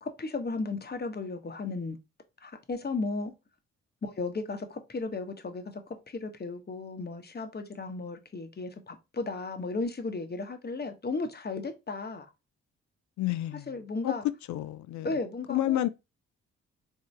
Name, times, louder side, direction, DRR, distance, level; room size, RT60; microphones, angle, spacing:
voice 1, 0.0-2.0 2.4-3.3 4.0-5.8 6.1-12.3 13.7-14.2 15.0-15.8, left 3 dB, 30° left, 1.0 m, -35 dB
voice 2, 13.2-13.7 14.0-14.1 14.5-15.1 15.5-15.9, left 14 dB, 60° left, 0.4 m, -29 dB
3.5 x 2.7 x 3.2 m
hypercardioid pair, 45°, 34 cm